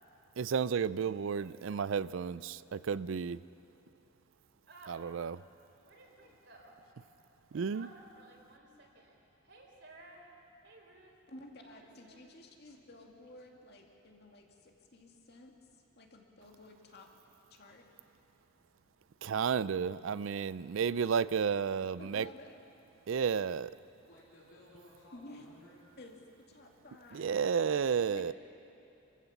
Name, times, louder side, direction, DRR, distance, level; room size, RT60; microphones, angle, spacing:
voice 1, 0.4-3.4 4.9-5.4 7.5-7.9 19.2-22.3 23.1-23.8 27.1-28.3, right 6 dB, 80° right, 0.4 m, -32 dB
voice 2, 1.3-2.0 4.7-5.0 5.9-6.7 7.5-9.2 9.4-10.3 10.6-11.2 11.6-12.3 24.4-24.5, right 2 dB, 60° right, 4.1 m, -57 dB
voice 3, 11.3-14.4 14.9-17.1 17.5-17.9 22.0-22.6 25.1-25.5 26.0-27.4 28.1-28.3, left 1 dB, 55° left, 2.4 m, -53 dB
voice 4, 24.1-25.9 28.2-28.3, left 1 dB, 75° left, 3.4 m, -58 dB
28.0 x 15.0 x 7.2 m
head